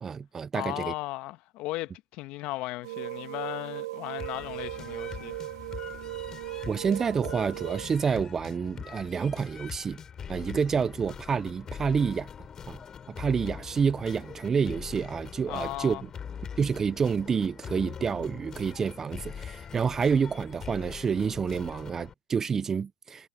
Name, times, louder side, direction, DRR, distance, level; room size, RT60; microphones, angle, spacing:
voice 1, 0.0-0.9 6.7-10.0 10.3-12.3 12.7-12.8 13.1-16.0 16.6-23.3, right 6 dB, 20° right, 0.4 m, -28 dB
voice 2, 0.5-5.4 15.5-16.0, left 19 dB, 50° left, 1.2 m, -36 dB
sound 1, 2.8-7.9, right 17 dB, 75° right, 1.3 m, -38 dB
sound 2, 4.2-22.1, left 7 dB, 25° left, 3.3 m, -42 dB
supercardioid pair, 125°, 2 cm